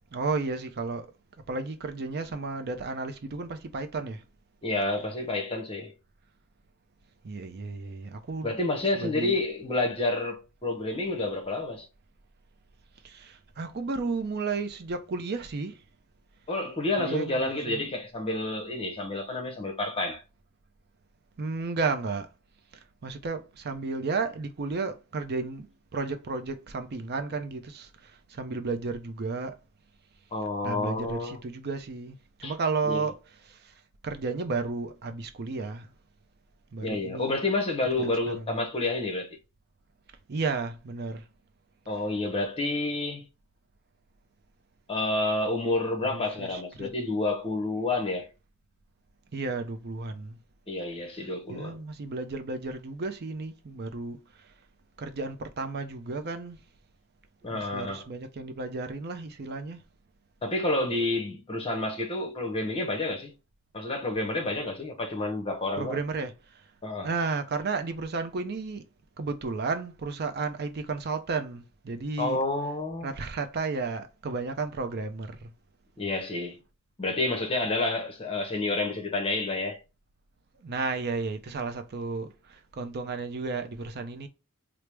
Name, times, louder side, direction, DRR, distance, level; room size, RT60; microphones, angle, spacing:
voice 1, 0.1-1.1 1.5-4.2 7.2-8.6 8.9-9.4 13.0-15.8 17.0-17.8 21.4-22.3 22.7-29.6 30.6-33.1 33.4-33.7 34.0-35.9 36.7-37.4 38.0-38.1 38.4-38.5 40.3-41.3 46.1-46.9 49.3-50.4 51.5-54.5 55.0-56.6 57.5-59.8 65.8-66.6 67.0-68.9 69.2-72.4 73.0-75.5 80.6-84.3, right 4 dB, 45° right, 0.5 m, -33 dB
voice 2, 4.6-5.9 8.4-11.9 16.5-20.2 30.3-31.4 32.4-32.5 32.9-33.1 36.8-39.4 41.9-43.3 44.9-48.3 50.7-51.8 57.4-58.1 60.4-63.3 63.7-66.0 66.8-67.1 72.2-73.1 76.0-76.6 77.0-79.8, left 2 dB, 25° left, 0.7 m, -29 dB
4.5 x 2.0 x 3.3 m
head